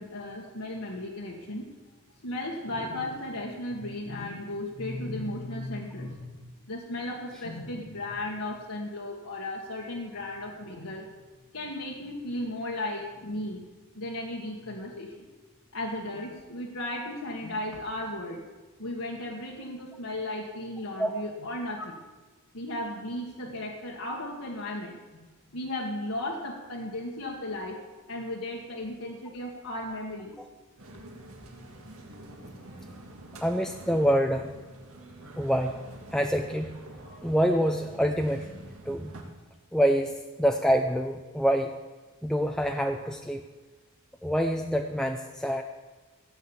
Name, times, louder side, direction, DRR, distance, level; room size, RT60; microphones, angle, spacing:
voice 1, 0.0-1.7 2.2-11.1 11.5-13.6 13.9-15.3 15.7-18.4 18.8-22.0 22.5-27.8 28.1-30.3, left 1 dB, 75° left, -3 dB, 1.7 m, -35 dB
sound 1, 30.8-39.2, right 1 dB, 75° right, 2.1 m, -47 dB
voice 2, 33.4-34.5 35.4-35.8 36.1-36.7 37.2-38.5 38.9-39.1 39.7-41.7 42.2-43.4 44.2-45.6, equal, 5° left, 3 dB, 0.5 m, -26 dB
15.5 x 8.4 x 7.3 m, 1.3 s
head